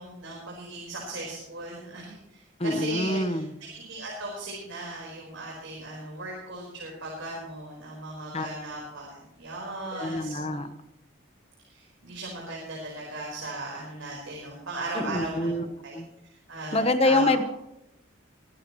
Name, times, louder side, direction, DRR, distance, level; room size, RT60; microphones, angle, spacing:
voice 1, 0.0-3.4 3.7-10.6 11.7-16.0 16.5-17.4, right 2 dB, 75° right, -3 dB, 4.5 m, -37 dB
voice 2, 2.6-3.5 8.3-8.5 9.9-10.7 14.9-15.7 15.9-16.1 16.7-17.4, left 2 dB, 30° left, 10 dB, 1.0 m, -25 dB
22.5 x 12.5 x 3.1 m, 0.86 s
head